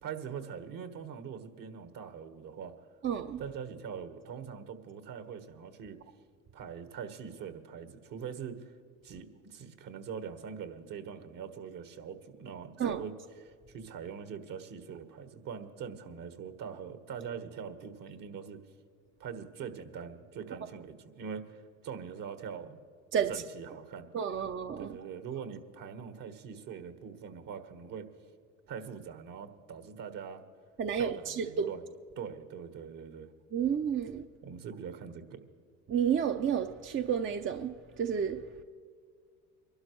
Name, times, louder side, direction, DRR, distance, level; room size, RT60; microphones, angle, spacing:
voice 1, 0.0-2.7 3.4-6.0 6.5-8.8 9.0-18.6 19.2-22.8 23.3-24.1 24.8-28.1 28.7-30.4 31.0-31.8 32.2-33.3 34.4-35.4, right 7 dB, 55° right, 1.6 m, -43 dB
voice 2, 3.0-3.4 12.8-13.0 23.1-23.3 24.1-24.9 30.8-31.7 33.5-34.2 35.9-38.4, right 8 dB, 30° right, 0.7 m, -31 dB
24.0 x 12.0 x 3.2 m
hypercardioid pair, 70°, 40 cm